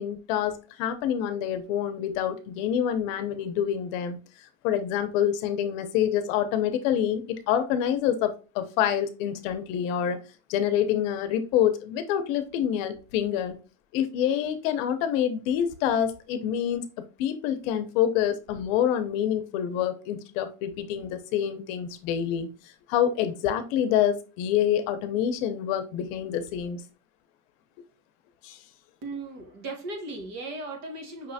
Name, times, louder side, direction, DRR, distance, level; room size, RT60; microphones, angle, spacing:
voice 1, 0.0-10.2 10.5-13.6 13.9-16.8 17.2-22.5 22.9-26.8 28.4-28.6, left 9 dB, 60° left, 0.8 m, -27 dB
voice 2, 29.0-31.3, right 2 dB, 35° right, 1.2 m, -37 dB
5.5 x 3.2 x 2.7 m
cardioid pair, 165°, 43 cm